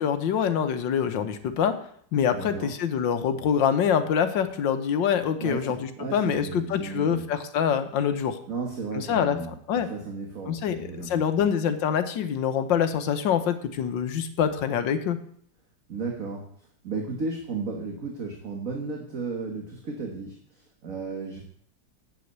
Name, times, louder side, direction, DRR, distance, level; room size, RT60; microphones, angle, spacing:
voice 1, 0.0-1.8 2.1-8.4 8.9-9.9 10.5-15.2, left 8 dB, 75° left, 9 dB, 1.6 m, -25 dB
voice 2, 2.3-2.8 5.4-7.2 8.5-11.3 15.9-16.5 16.8-21.4, right 4 dB, 45° right, 1 dB, 1.8 m, -34 dB
8.3 x 8.1 x 8.0 m, 0.63 s
omnidirectional pair, 2.0 m